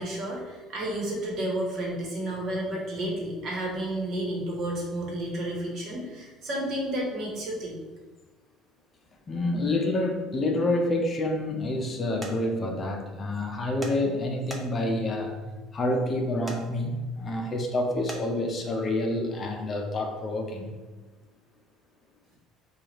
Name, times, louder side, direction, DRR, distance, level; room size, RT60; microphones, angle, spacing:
voice 1, 0.0-7.8, right 1 dB, 50° right, -2 dB, 1.2 m, -31 dB
voice 2, 9.3-15.4 15.7-20.7, left 1 dB, 30° left, 2 dB, 0.6 m, -28 dB
sound 1, 12.2-12.3 13.8-14.0 14.5-14.9 16.5-16.6 18.1-18.2, right 2 dB, 15° right, 0.7 m, -37 dB
4.7 x 2.4 x 3.0 m, 1.2 s
supercardioid pair, 105°, 0 cm